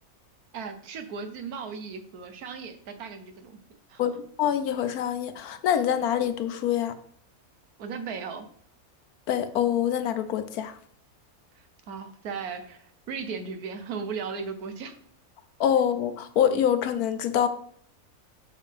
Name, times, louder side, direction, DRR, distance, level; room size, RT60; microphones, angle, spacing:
voice 1, 0.5-3.6 3.9-4.2 7.8-8.5 11.5-15.0, right 5 dB, 85° right, 1.4 m, -37 dB
voice 2, 4.4-7.0 9.3-10.8 15.6-17.5, left 9 dB, 85° left, 1.3 m, -25 dB
8.0 x 6.5 x 3.4 m
omnidirectional pair, 1.6 m